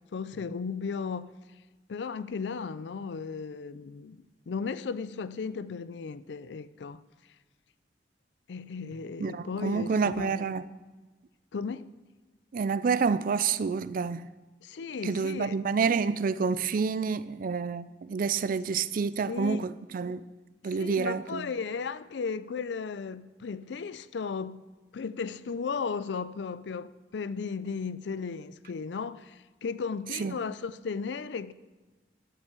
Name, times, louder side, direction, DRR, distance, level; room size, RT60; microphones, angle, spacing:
voice 1, 0.1-1.3 1.9-7.0 8.5-10.3 11.5-11.9 14.6-15.6 19.3-19.6 20.8-24.6 24.9-31.5, left 5 dB, 70° left, 0.4 m, -35 dB
voice 2, 9.2-10.6 12.5-14.3 15.0-20.2 20.6-21.5 30.2-30.4, right 5 dB, 50° right, 0.4 m, -28 dB
12.0 x 5.6 x 6.9 m
head